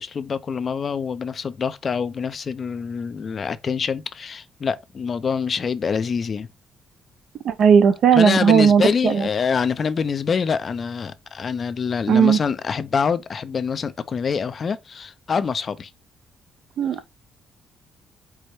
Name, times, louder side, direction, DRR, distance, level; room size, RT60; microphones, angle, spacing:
voice 1, 0.0-6.5 8.1-15.9, left 6 dB, 45° left, 0.4 m, -25 dB
voice 2, 7.4-9.3 12.1-12.4 16.8-17.1, right 7 dB, 65° right, 0.5 m, -16 dB
4.7 x 2.1 x 4.3 m
cardioid pair, 95°, 0 cm